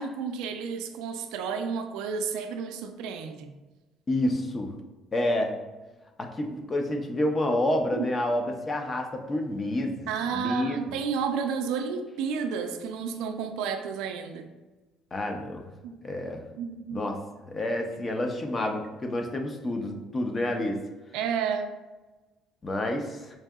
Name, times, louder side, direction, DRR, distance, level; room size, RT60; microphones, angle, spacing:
voice 1, 0.0-3.5 7.9-8.1 10.1-14.5 15.8-16.0 16.6-17.0 21.1-21.7, right 6 dB, 90° right, 6 dB, 0.4 m, -31 dB
voice 2, 4.1-4.7 5.1-5.5 6.2-10.8 15.1-15.6 16.0-16.4 16.9-17.2 17.5-20.8 22.6-23.2, left 1 dB, 25° left, 3 dB, 0.5 m, -29 dB
4.6 x 2.6 x 2.3 m, 1.2 s
cardioid pair, 125°, 0 cm